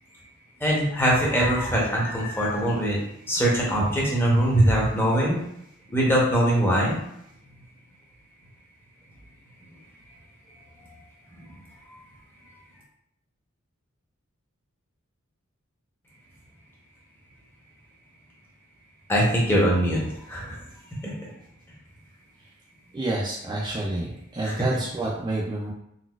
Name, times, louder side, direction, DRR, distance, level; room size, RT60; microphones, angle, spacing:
voice 1, 0.6-3.0 3.3-5.4 5.9-7.0 10.8-10.9 11.4-11.5 19.1-20.6 20.9-21.3 24.4-24.6, right 1 dB, 10° left, -4 dB, 0.7 m, -22 dB
voice 2, 22.9-25.7, right 2 dB, 20° right, -4 dB, 0.3 m, -29 dB
3.9 x 2.3 x 2.3 m, 0.76 s
head